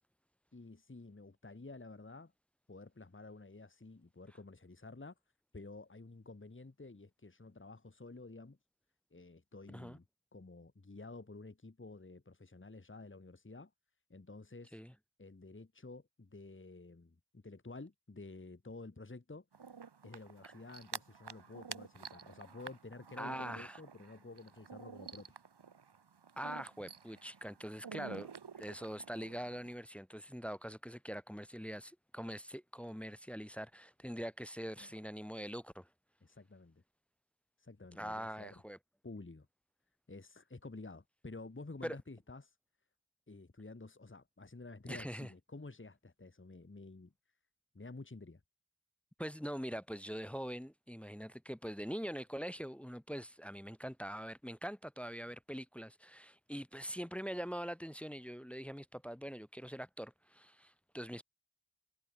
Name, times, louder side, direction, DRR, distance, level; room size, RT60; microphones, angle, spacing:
voice 1, 0.5-2.3 2.7-5.2 5.5-8.6 9.1-10.0 10.3-13.7 14.1-14.8 15.2-19.5 20.0-25.4 34.8-34.9 36.2-36.8 37.6-38.6 39.0-39.5 40.1-42.5 43.3-47.1 47.7-48.4, left 3 dB, 25° left, 1.7 m, -51 dB
sound 1, 19.5-29.7, right 6 dB, 60° right, 1.2 m, -50 dB
voice 2, 23.2-23.8 26.4-28.3 28.6-35.9 37.9-38.8 41.8-42.0 44.9-45.3 49.2-61.2, equal, 5° left, 0.3 m, -43 dB
wide cardioid pair, 45°, 47 cm